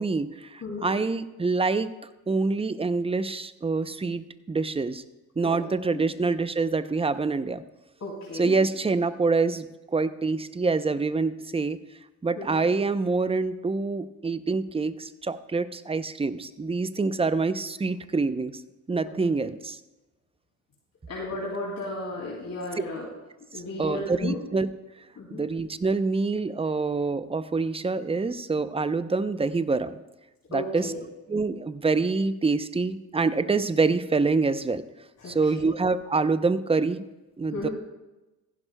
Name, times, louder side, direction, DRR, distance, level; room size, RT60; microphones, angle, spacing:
voice 1, 0.0-1.9 2.3-5.0 5.4-7.6 8.3-11.8 12.2-18.6 18.9-19.8 23.8-24.7 25.3-29.9 30.5-30.9 31.3-34.8 35.3-37.1 37.4-37.7, right 4 dB, 15° right, 13 dB, 0.6 m, -26 dB
voice 2, 0.6-1.0 5.4-5.6 5.8-6.0 8.0-8.5 12.4-12.7 17.0-17.3 19.0-19.1 21.1-23.1 23.5-24.4 25.2-25.4 30.5-31.0 35.2-35.6 37.5-37.7, left 2 dB, 45° left, -4 dB, 2.6 m, -34 dB
15.0 x 11.0 x 2.2 m, 1.0 s
supercardioid pair, 70°, 36 cm